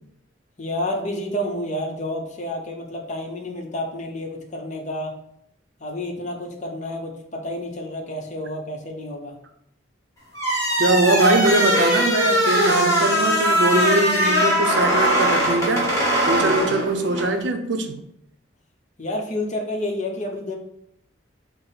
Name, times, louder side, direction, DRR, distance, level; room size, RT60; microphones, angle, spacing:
voice 1, 0.6-5.1 5.8-9.4 19.0-20.6, left 1 dB, 40° left, 0.7 m, -29 dB
sound 1, 10.3-17.3, equal, 15° left, 1.3 m, -20 dB
voice 2, 10.8-16.0 16.3-18.0, right 2 dB, 75° right, 0.5 m, -21 dB
5.8 x 2.0 x 4.0 m
head